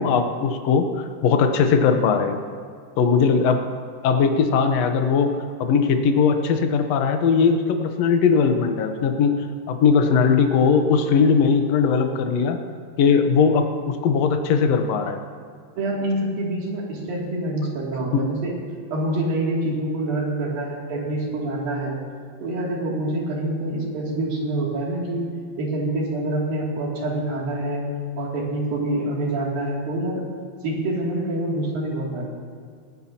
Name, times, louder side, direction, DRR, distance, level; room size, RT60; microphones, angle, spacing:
voice 1, 0.0-2.4 3.0-3.6 4.0-5.3 5.6-9.3 9.7-12.6 13.0-15.2 18.1-18.2, left 5 dB, 75° left, 6 dB, 1.5 m, -19 dB
voice 2, 15.7-18.6 18.9-22.0 22.4-25.3 25.6-27.8 28.2-30.2 30.6-32.3, right 1 dB, 70° right, -3 dB, 4.3 m, -26 dB
20.0 x 15.5 x 2.9 m, 2.1 s
omnidirectional pair, 4.3 m